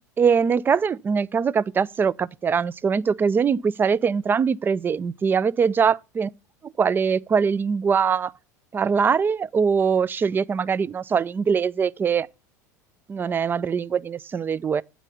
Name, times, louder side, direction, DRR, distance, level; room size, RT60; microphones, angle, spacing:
voice 1, 0.2-6.3 6.8-8.3 8.7-12.3 13.1-14.8, right 6 dB, 20° right, 0.4 m, -22 dB
8.9 x 4.1 x 6.7 m
hypercardioid pair, 85°, 9 cm